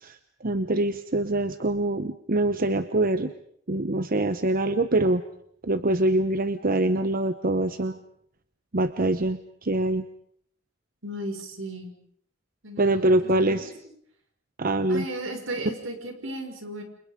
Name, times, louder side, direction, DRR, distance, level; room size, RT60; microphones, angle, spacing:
voice 1, 0.0-3.3 3.7-5.2 5.6-8.0 8.7-10.0 12.8-13.7 14.6-15.0, right 2 dB, 45° right, 10 dB, 1.0 m, -24 dB
voice 2, 11.0-11.9 12.6-13.7 14.9-16.8, right 1 dB, 75° right, 5 dB, 5.8 m, -35 dB
29.5 x 28.0 x 5.2 m, 0.67 s
head